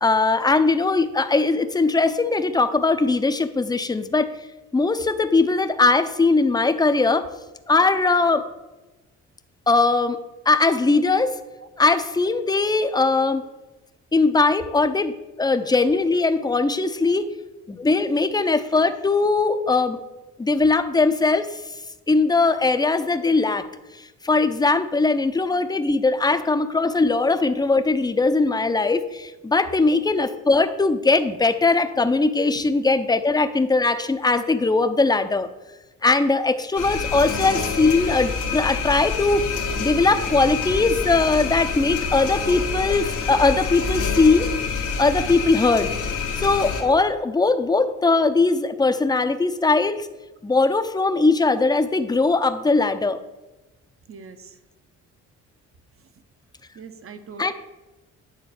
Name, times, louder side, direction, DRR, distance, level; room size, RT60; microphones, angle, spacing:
voice 1, 0.0-4.3 4.7-7.3 7.7-8.4 9.7-10.2 10.5-11.3 11.8-13.4 14.1-17.3 17.7-20.0 20.4-21.6 22.1-23.7 24.2-35.5 36.0-39.4 39.8-44.5 45.0-45.9 46.4-50.1 50.4-53.2 57.4-57.5, left 3 dB, 15° left, 10 dB, 0.6 m, -20 dB
sound 1, 36.8-46.8, left 5 dB, 90° left, 1.5 m, -27 dB
voice 2, 54.1-54.6 56.7-57.5, right 5 dB, 45° right, 10 dB, 1.0 m, -42 dB
9.6 x 4.0 x 7.1 m, 1.0 s
cardioid pair, 90°, 30 cm